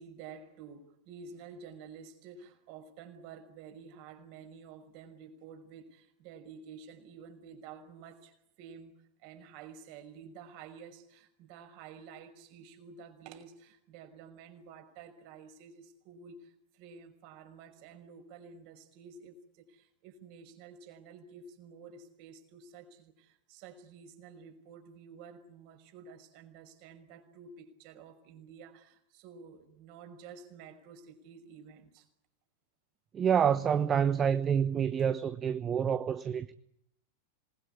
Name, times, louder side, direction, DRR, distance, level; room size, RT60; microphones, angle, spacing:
voice 1, 0.0-8.9 9.2-32.1, right 6 dB, 45° right, 5.7 m, -51 dB
voice 2, 33.1-36.5, right 8 dB, 25° right, 1.1 m, -28 dB
27.5 x 20.5 x 9.9 m
figure-of-eight pair, 90°, 0 cm